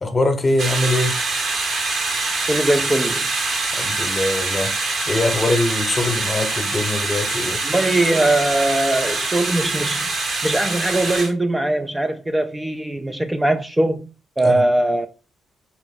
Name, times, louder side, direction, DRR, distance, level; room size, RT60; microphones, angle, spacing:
voice 1, 0.0-1.2 3.7-7.6 14.4-14.6, left 2 dB, 30° left, 0.9 m, -22 dB
sound 1, 0.6-11.3, right 3 dB, 50° right, 1.0 m, -24 dB
voice 2, 2.5-3.3 7.6-10.1 10.4-14.1 14.4-15.1, right 1 dB, 10° right, 0.4 m, -20 dB
4.5 x 2.5 x 3.8 m
cardioid pair, 90°, 0 cm